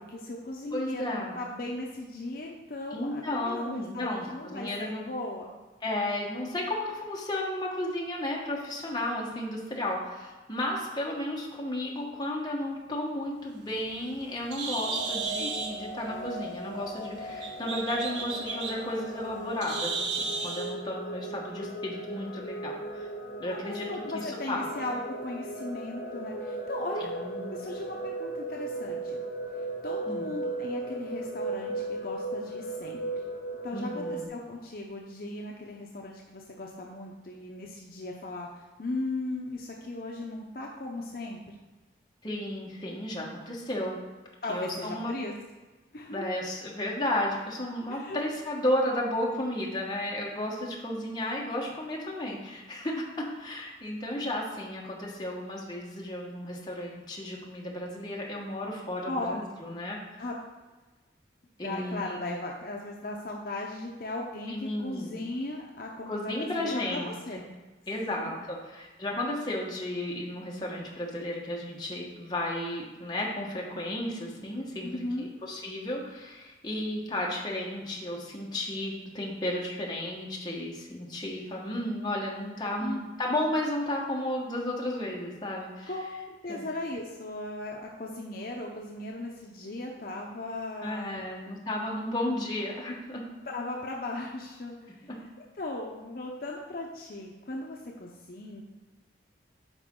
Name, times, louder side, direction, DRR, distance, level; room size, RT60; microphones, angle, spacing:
voice 1, 0.0-5.5 15.4-15.5 23.4-27.1 27.5-29.2 29.5-33.2 33.6-41.4 44.4-45.3 45.9-46.3 47.9-48.2 59.0-59.4 60.2-60.3 61.6-67.4 68.1-68.4 74.8-75.3 82.8-83.0 85.9-91.3 93.5-95.1 95.6-98.6, left 2 dB, 50° left, -1 dB, 0.7 m, -37 dB
voice 2, 0.7-1.3 2.9-5.0 5.8-23.1 23.4-23.9 24.1-24.6 27.0-27.6 30.1-30.3 33.7-34.3 42.2-44.0 44.5-45.1 46.1-60.2 61.6-62.2 64.5-65.2 66.1-67.4 67.9-85.9 86.5-86.6 90.8-93.2, left 1 dB, 25° left, -3 dB, 1.2 m, -33 dB
Bird, 13.4-20.7, right 4 dB, 85° right, 1.1 m, -35 dB
sound 1, 14.7-34.3, right 1 dB, 65° left, 1.0 m, -37 dB
9.0 x 5.1 x 3.7 m, 1.2 s
head